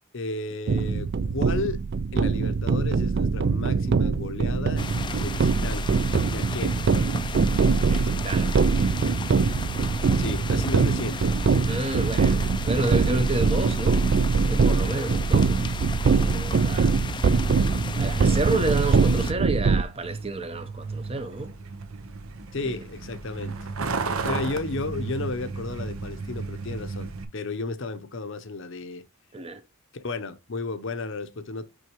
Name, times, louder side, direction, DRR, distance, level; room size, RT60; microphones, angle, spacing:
voice 1, 0.1-1.8 2.1-4.8 5.2-6.8 10.2-11.3 22.5-23.7 24.2-29.1 29.9-31.7, left 3 dB, 60° left, 0.8 m, -33 dB
sound 1, 0.7-19.8, right 4 dB, 50° right, 0.4 m, -23 dB
sound 2, 4.8-19.3, left 5 dB, 20° left, 0.4 m, -36 dB
voice 2, 7.9-8.6 10.5-10.7 11.6-14.1 14.4-15.6 16.0-16.9 18.0-21.5 22.6-22.8 29.3-29.6, right 2 dB, 25° right, 0.8 m, -30 dB
Truck, 19.6-27.2, right 4 dB, 70° right, 0.9 m, -34 dB
6.2 x 5.6 x 3.0 m
head